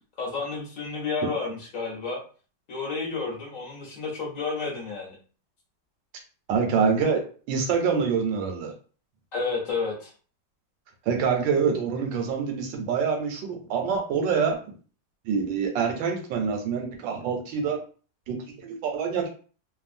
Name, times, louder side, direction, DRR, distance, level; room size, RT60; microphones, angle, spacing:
voice 1, 0.2-2.2 2.7-5.1 9.3-10.1, left 4 dB, 50° left, -3 dB, 1.3 m, -31 dB
voice 2, 6.5-7.2 7.5-8.7 11.1-14.6 15.2-17.8 18.3-19.3, right 6 dB, 85° right, 3 dB, 1.4 m, -26 dB
3.3 x 2.3 x 2.5 m, 0.39 s
omnidirectional pair, 2.0 m